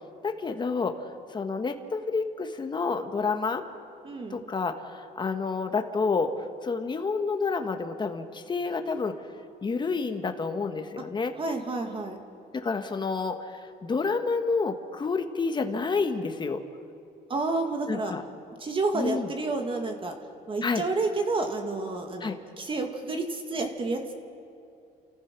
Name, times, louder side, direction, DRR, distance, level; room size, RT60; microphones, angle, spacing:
voice 1, 0.2-1.0 1.3-3.6 4.3-6.3 6.6-9.1 9.6-11.3 12.5-16.6 17.9-18.2 18.9-19.3 20.6-20.8 22.2-22.4, left 4 dB, 25° left, 7 dB, 1.5 m, -29 dB
voice 2, 4.0-4.4 11.4-12.2 17.3-18.1 18.6-20.1 20.5-24.0, right 3 dB, 30° right, 4 dB, 2.1 m, -30 dB
29.5 x 14.5 x 6.1 m, 2.6 s
cardioid pair, 110°, 17 cm